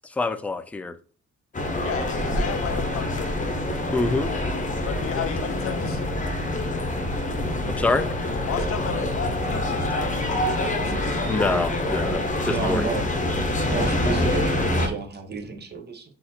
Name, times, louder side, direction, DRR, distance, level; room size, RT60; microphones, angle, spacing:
voice 1, 0.2-1.0 3.9-4.3 7.7-8.0 11.3-12.9 13.5-13.6, left 3 dB, 5° left, 0.3 m, -26 dB
sound 1, 1.5-14.9, left 1 dB, 25° left, 0.9 m, -26 dB
voice 2, 1.8-3.6 4.7-6.0 8.5-11.2, left 9 dB, 50° left, 0.6 m, -34 dB
voice 3, 12.4-13.1 13.7-16.0, right 4 dB, 35° right, 1.0 m, -31 dB
4.0 x 2.8 x 4.2 m
cardioid pair, 90°, 30 cm